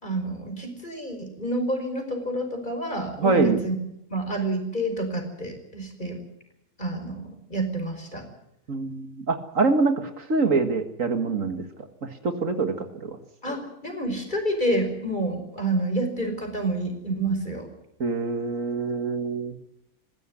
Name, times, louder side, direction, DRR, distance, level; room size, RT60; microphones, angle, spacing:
voice 1, 0.0-3.8 4.1-6.2 6.8-8.3 13.4-17.7, right 1 dB, 30° left, 5 dB, 5.3 m, -28 dB
voice 2, 3.2-3.6 8.7-11.6 12.0-13.2 18.0-19.5, right 3 dB, 65° right, 7 dB, 2.1 m, -25 dB
20.0 x 16.0 x 9.8 m, 0.78 s
omnidirectional pair, 1.5 m